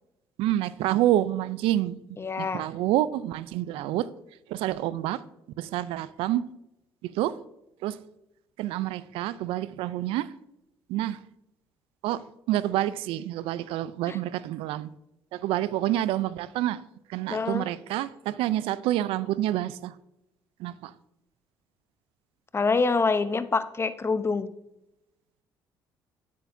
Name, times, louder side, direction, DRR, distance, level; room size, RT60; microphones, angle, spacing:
voice 1, 0.4-2.0 2.4-4.1 4.5-5.2 5.6-6.4 7.0-7.4 7.8-8.0 8.6-10.3 10.9-11.2 12.0-12.2 12.5-14.9 15.3-16.8 17.1-19.9 20.6-20.9, right 13 dB, 80° right, 0.4 m, -28 dB
voice 2, 2.2-2.7 14.1-14.2 17.3-17.7 22.5-24.5, left 4 dB, 25° left, 0.7 m, -26 dB
9.0 x 8.5 x 2.6 m
supercardioid pair, 75°, 9 cm